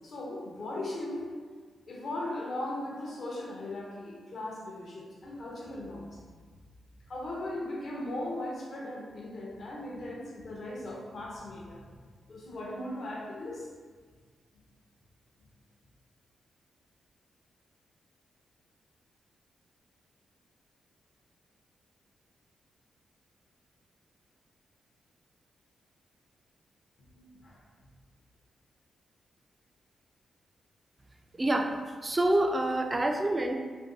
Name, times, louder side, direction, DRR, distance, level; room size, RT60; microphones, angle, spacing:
voice 1, 0.0-1.3 1.9-6.2 7.0-13.7 27.2-27.6, left 1 dB, 60° left, -3 dB, 0.7 m, -38 dB
voice 2, 31.4-33.5, right 1 dB, 25° right, 3 dB, 0.3 m, -27 dB
2.6 x 2.2 x 3.6 m, 1.5 s
cardioid pair, 85°, 0 cm